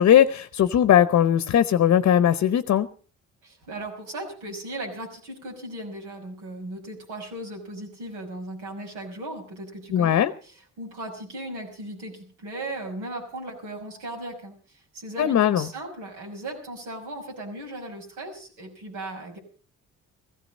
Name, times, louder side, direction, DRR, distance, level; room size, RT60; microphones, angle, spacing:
voice 1, 0.0-2.9 9.9-10.3 15.2-15.6, left 10 dB, 60° left, 13 dB, 0.9 m, -19 dB
voice 2, 3.4-19.4, right 1 dB, 85° right, 1 dB, 5.7 m, -37 dB
16.0 x 14.5 x 5.2 m, 0.41 s
cardioid pair, 90°, 30 cm